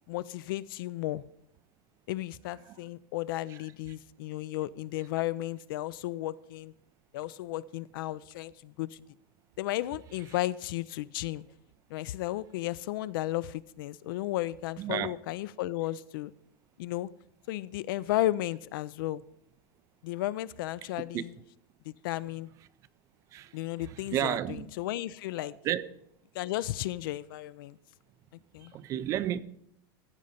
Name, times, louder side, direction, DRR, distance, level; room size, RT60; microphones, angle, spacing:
voice 1, 0.1-1.2 2.1-6.7 7.1-9.0 9.6-11.4 11.9-16.3 16.8-17.1 17.5-19.2 20.0-21.3 21.9-22.5 23.5-25.6 26.3-27.8 28.5-28.7, left 15 dB, 60° left, 0.4 m, -34 dB
voice 2, 14.8-15.1 21.0-21.2 23.3-24.7 25.6-25.9 28.6-29.4, right 12 dB, 25° right, 0.4 m, -32 dB
15.0 x 5.2 x 5.6 m
supercardioid pair, 165°, 13 cm